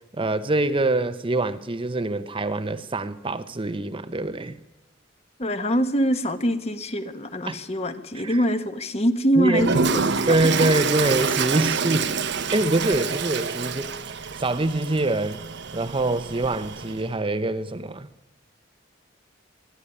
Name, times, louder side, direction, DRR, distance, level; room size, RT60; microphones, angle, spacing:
voice 1, 0.1-4.6 7.5-7.6 8.1-8.4 9.4-9.7 10.3-12.1 12.5-14.0 14.4-15.4 15.7-18.1, right 2 dB, 30° right, 0.8 m, -24 dB
voice 2, 5.4-10.0, equal, 35° left, 1.4 m, -24 dB
Toilet flush, 9.5-17.1, right 5 dB, 65° right, 1.0 m, -27 dB
22.5 x 13.0 x 10.0 m
head